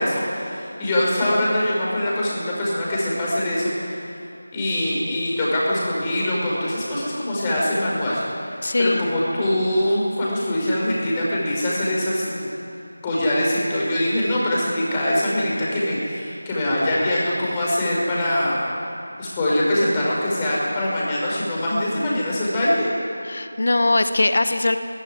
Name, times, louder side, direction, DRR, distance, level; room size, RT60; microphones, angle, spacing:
voice 1, 0.0-3.7 4.5-12.4 13.0-18.6 19.2-22.9, left 1 dB, 15° left, -6 dB, 5.8 m, -23 dB
voice 2, 8.6-9.0 23.2-24.8, left 2 dB, 50° left, 9 dB, 1.0 m, -20 dB
18.5 x 17.0 x 9.7 m, 2.8 s
figure-of-eight pair, 165°, 0 cm